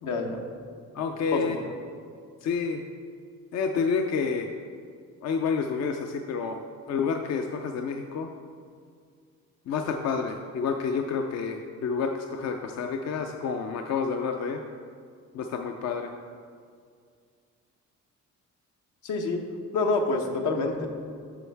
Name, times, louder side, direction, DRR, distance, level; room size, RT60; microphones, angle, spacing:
voice 1, 0.0-0.4 1.3-1.7 19.0-19.4 19.7-20.9, left 3 dB, 80° left, 2 dB, 1.0 m, -27 dB
voice 2, 1.0-1.6 2.4-2.8 3.5-4.5 5.2-6.6 6.9-8.3 9.7-14.6 15.3-16.1, left 5 dB, 60° left, 4 dB, 0.5 m, -29 dB
8.9 x 6.2 x 3.4 m, 2.2 s
cardioid pair, 90°, 30 cm